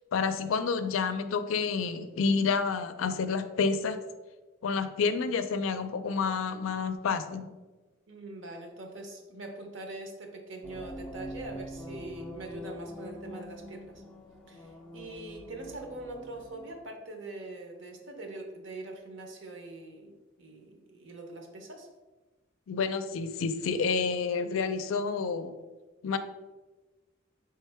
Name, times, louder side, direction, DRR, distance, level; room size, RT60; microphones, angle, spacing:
voice 1, 0.1-4.0 4.6-7.5 22.7-25.5 26.0-26.2, left 5 dB, 80° left, 10 dB, 0.4 m, -29 dB
voice 2, 8.1-14.0 14.5-21.9, right 2 dB, 65° right, 2 dB, 0.8 m, -43 dB
sound 1, 10.6-16.8, left 1 dB, 5° left, 0.4 m, -44 dB
4.5 x 3.3 x 3.4 m, 1.2 s
head